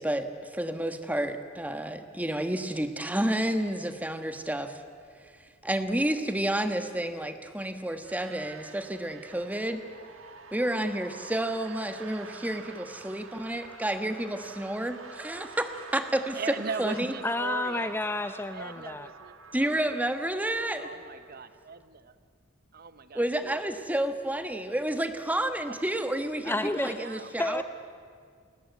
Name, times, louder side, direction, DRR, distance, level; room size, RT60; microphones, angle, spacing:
voice 1, 0.0-4.8 5.6-9.8 10.5-16.4 16.8-17.1 19.5-20.9 23.1-27.6, right 1 dB, 10° right, 8 dB, 1.3 m, -30 dB
sound 1, 8.0-21.7, right 5 dB, 90° right, 1.5 m, -48 dB
voice 2, 16.3-17.9 18.5-20.1 20.7-22.1 22.7-23.6 25.7-25.8 26.8-27.3, right 5 dB, 50° right, 12 dB, 0.8 m, -40 dB
voice 3, 17.2-19.1 26.4-27.1 27.4-27.6, left 2 dB, 10° left, 10 dB, 0.6 m, -30 dB
29.0 x 14.0 x 9.3 m, 2.1 s
head